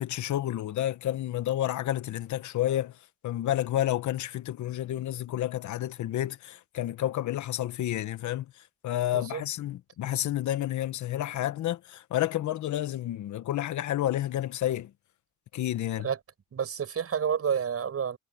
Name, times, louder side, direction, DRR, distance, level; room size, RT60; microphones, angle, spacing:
voice 1, 0.0-2.9 3.2-8.5 8.8-14.9 15.5-16.1, left 13 dB, 70° left, 1.2 m, -30 dB
voice 2, 16.5-18.2, right 7 dB, 50° right, 7.4 m, -29 dB
cardioid pair, 90°, 30 cm